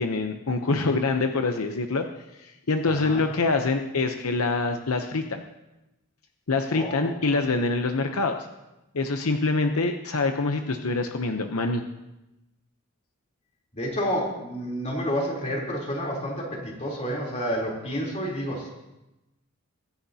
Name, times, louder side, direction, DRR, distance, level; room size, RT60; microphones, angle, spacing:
voice 1, 0.0-2.0 2.4-5.4 6.5-8.4 8.9-11.8, left 3 dB, 80° left, 5 dB, 0.8 m, -25 dB
voice 2, 6.7-7.1 7.5-7.6 13.7-18.7, equal, 30° left, -2 dB, 3.5 m, -30 dB
23.0 x 10.0 x 2.8 m, 0.95 s
head